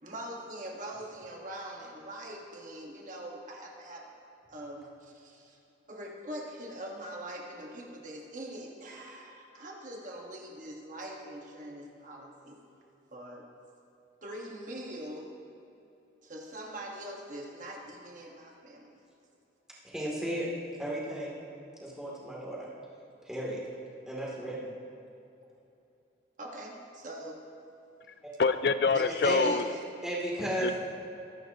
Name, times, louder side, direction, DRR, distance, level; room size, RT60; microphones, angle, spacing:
voice 1, 0.0-4.1 4.5-5.6 5.9-12.6 13.1-13.5 14.2-15.3 16.2-18.9 26.4-27.4 28.9-29.8, right 1 dB, 45° right, -1 dB, 1.5 m, -42 dB
voice 2, 19.8-20.5 20.8-21.3 21.8-22.7 23.3-23.6 24.1-24.7 29.2-29.5 30.0-30.7, right 1 dB, 5° right, -6 dB, 2.8 m, -34 dB
voice 3, 28.4-29.7 30.6-30.8, left 4 dB, 55° left, 11 dB, 0.4 m, -25 dB
23.0 x 11.0 x 3.0 m, 2.8 s
head